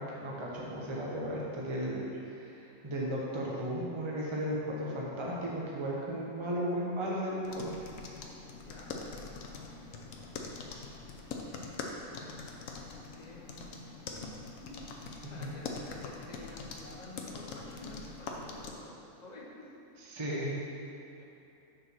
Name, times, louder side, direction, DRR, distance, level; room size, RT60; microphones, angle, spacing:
voice 1, 0.0-7.7 15.2-15.6 20.0-20.5, equal, 25° right, -4 dB, 0.9 m, -35 dB
sound 1, 7.4-18.7, left 4 dB, 70° left, 1.1 m, -43 dB
voice 2, 8.6-8.9 9.4-10.7 12.1-12.7 12.9-13.9 14.2-14.4 14.7-14.8 15.3-19.5 21.2-21.3, left 1 dB, 35° left, -3 dB, 1.1 m, -51 dB
6.6 x 4.6 x 6.0 m, 2.9 s
omnidirectional pair, 1.5 m